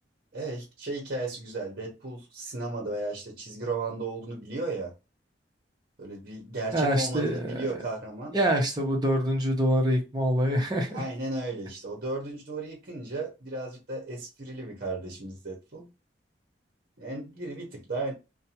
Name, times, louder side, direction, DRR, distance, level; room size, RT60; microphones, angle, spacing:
voice 1, 0.3-4.9 6.0-8.4 10.9-15.9 17.0-18.1, right 2 dB, 55° right, 0.9 m, -35 dB
voice 2, 6.7-7.6 8.3-11.0, equal, 25° right, 0.9 m, -25 dB
2.6 x 2.2 x 2.8 m
head